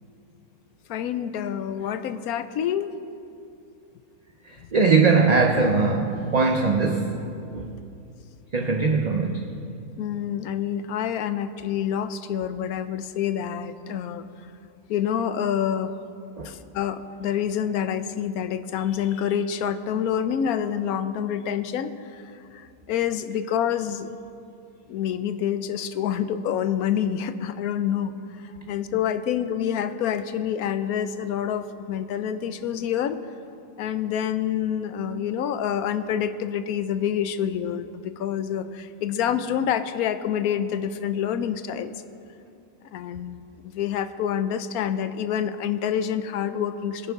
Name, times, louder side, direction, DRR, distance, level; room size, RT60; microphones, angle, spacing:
voice 1, 0.9-2.9 4.6-4.7 10.0-14.3 14.9-15.9 16.4-24.1 24.9-33.2 33.8-42.0 42.9-47.1, left 9 dB, 80° left, 11 dB, 1.1 m, -27 dB
voice 2, 4.7-7.2 7.5-7.7 8.5-9.5 16.4-16.5, right 4 dB, 40° right, 2 dB, 0.6 m, -21 dB
21.5 x 9.8 x 3.6 m, 2.6 s
omnidirectional pair, 1.6 m